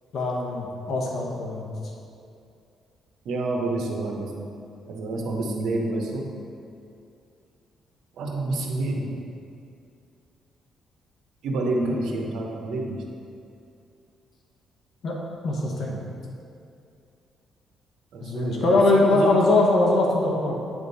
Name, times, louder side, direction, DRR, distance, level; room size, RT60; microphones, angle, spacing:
voice 1, 0.1-1.7 15.0-15.2 15.4-16.0 18.2-20.5, left 2 dB, 60° left, -1 dB, 1.0 m, -22 dB
voice 2, 3.2-4.5 4.9-6.2 8.2-9.1 11.4-13.0 18.1-19.4, right 2 dB, 80° right, 0 dB, 0.9 m, -28 dB
9.1 x 3.6 x 4.1 m, 2.5 s
cardioid pair, 90°, 0 cm